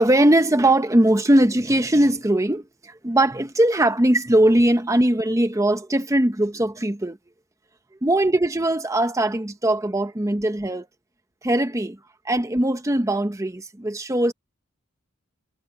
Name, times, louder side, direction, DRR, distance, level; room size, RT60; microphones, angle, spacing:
voice 1, 0.0-7.2 8.0-10.9 11.4-12.0 12.3-14.3, right 1 dB, 15° right, 0.9 m, -20 dB
head